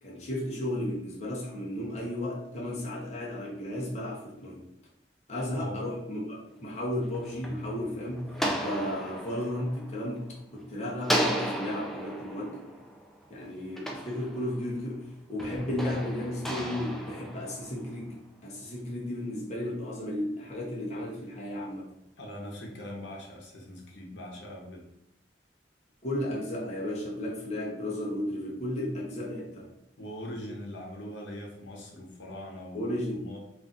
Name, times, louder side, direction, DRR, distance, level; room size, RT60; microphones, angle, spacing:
voice 1, 0.0-4.6 5.3-8.3 8.6-12.7 13.3-21.9 26.0-29.7 32.7-33.2, left 1 dB, 40° left, -4 dB, 0.7 m, -34 dB
voice 2, 5.5-5.9 22.2-24.8 30.0-32.8 33.1-33.4, left 1 dB, 85° left, -1 dB, 0.8 m, -41 dB
sound 1, 6.9-10.6 11.0-14.8 15.4-18.1, equal, ahead, 0.3 m, -35 dB
2.5 x 2.3 x 3.8 m, 0.82 s
head